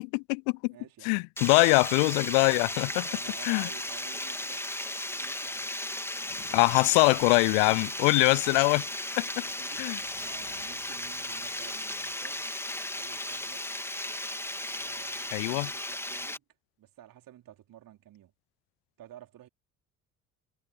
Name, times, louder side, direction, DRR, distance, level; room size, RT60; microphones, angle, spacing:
voice 1, 0.0-0.7 1.0-3.1 3.4-3.7 6.5-8.8 9.2-9.3 9.8-10.0 15.3-15.7, left 40 dB or more, 60° left, 0.9 m, -23 dB
voice 2, 0.7-1.3 2.8-4.7 5.1-5.7 9.1-12.5 12.9-13.6 14.7-16.4 16.8-18.3 19.0-19.5, right 12 dB, 50° right, 4.3 m, -52 dB
Water, 1.4-16.4, left 1 dB, 5° left, 2.6 m, -36 dB
sound 1, 6.2-11.6, left 9 dB, 40° left, 3.3 m, -56 dB
figure-of-eight pair, 50°, 43 cm